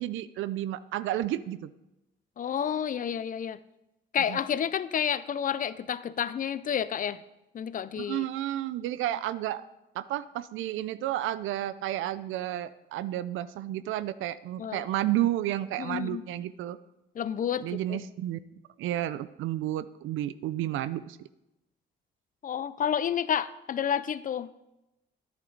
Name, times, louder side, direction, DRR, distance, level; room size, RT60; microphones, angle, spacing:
voice 1, 0.0-1.7 4.3-4.4 8.0-9.6 10.0-16.8 17.6-18.4 18.8-21.2, right 13 dB, 85° right, 15 dB, 0.5 m, -31 dB
voice 2, 2.4-3.6 4.1-7.2 7.5-8.3 14.6-14.9 15.8-16.2 17.1-18.0 22.4-24.5, left 8 dB, 45° left, 16 dB, 0.5 m, -30 dB
10.5 x 9.6 x 3.9 m, 0.93 s
cardioid pair, 90°, 20 cm